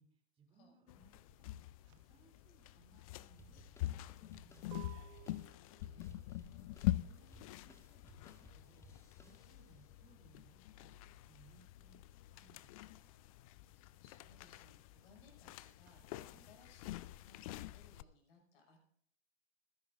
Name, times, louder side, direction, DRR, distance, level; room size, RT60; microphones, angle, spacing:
voice 1, 0.0-5.1 6.6-8.9 9.2-12.0 12.3-13.1 16.3-16.7, right 4 dB, 15° right, 2 dB, 2.9 m, -68 dB
sound 1, 0.9-18.0, left 16 dB, 35° left, 0.4 m, -45 dB
sound 2, 1.3-11.5 11.8-16.0, right 15 dB, 35° right, 1.2 m, -61 dB
sound 3, 3.4-9.9, left 1 dB, 10° left, 1.7 m, -62 dB
voice 2, 5.8-6.7 13.6-18.9, left 3 dB, 55° left, 2 dB, 5.9 m, -66 dB
27.5 x 10.5 x 2.5 m, 0.66 s
figure-of-eight pair, 110°, 33 cm